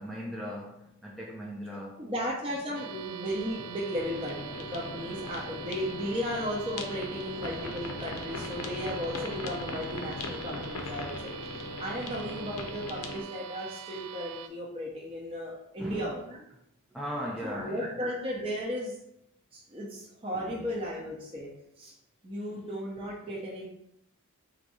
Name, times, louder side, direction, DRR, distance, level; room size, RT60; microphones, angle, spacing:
voice 1, 0.0-2.1 2.5-2.8 11.9-12.3 15.8-16.1 16.9-18.0 20.3-20.7 22.4-22.6, equal, ahead, -4 dB, 0.3 m, -39 dB
voice 2, 2.0-11.3 11.8-16.4 17.4-18.9 19.5-21.5 21.8-21.9 22.2-23.7, equal, 25° right, -5 dB, 0.7 m, -35 dB
sound 1, 2.7-14.5, right 7 dB, 80° right, 0.5 m, -43 dB
sound 2, 3.9-13.2, left 3 dB, 70° left, 0.6 m, -40 dB
4.0 x 2.7 x 4.7 m, 0.79 s
head